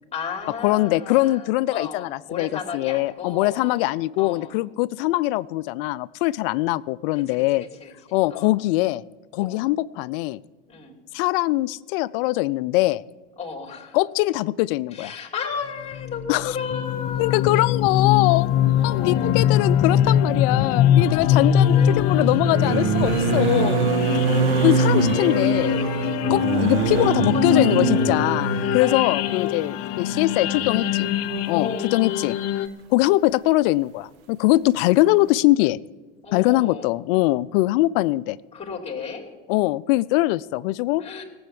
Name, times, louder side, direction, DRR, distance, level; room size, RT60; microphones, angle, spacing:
voice 1, 0.1-4.6 7.1-8.5 9.4-9.6 10.7-10.9 13.4-14.0 14.9-17.6 18.7-19.4 21.0-22.4 23.3-24.1 25.1-29.6 31.5-32.1 36.2-36.8 38.5-39.3 41.0-41.2, left 6 dB, 20° left, 1 dB, 3.0 m, -35 dB
voice 2, 0.6-7.6 8.1-9.0 9.3-10.4 11.1-13.0 13.9-15.1 16.3-16.6 17.2-18.5 18.8-23.8 24.6-25.8 26.3-31.1 31.5-32.4 32.9-35.8 36.3-38.4 39.5-41.0, left 18 dB, 70° left, 19 dB, 0.5 m, -22 dB
sound 1, 15.9-32.7, left 9 dB, 50° left, 0.9 m, -22 dB
sound 2, 18.9-19.0 21.2-28.9 30.1-30.2 30.6-30.7, right 6 dB, 75° right, 1.3 m, -24 dB
17.5 x 7.9 x 7.4 m, 1.3 s
supercardioid pair, 100°, 29 cm